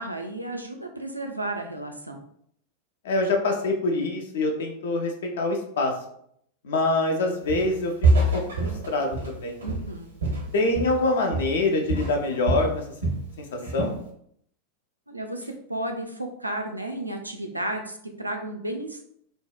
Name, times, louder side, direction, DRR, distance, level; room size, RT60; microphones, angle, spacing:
voice 1, 0.0-2.2 9.6-10.1 15.1-19.0, right 1 dB, 85° right, 4 dB, 0.3 m, -33 dB
voice 2, 3.0-5.9 6.6-7.9 8.2-9.6 10.5-12.8 13.4-13.9, left 2 dB, 60° left, 2 dB, 0.5 m, -25 dB
Walk footsteps, 7.5-7.8 8.0-11.1 11.3-11.6 11.9-13.3 13.6-14.0, right 2 dB, 70° right, 0.7 m, -25 dB
2.6 x 2.0 x 2.3 m, 0.68 s
figure-of-eight pair, 90°, 0 cm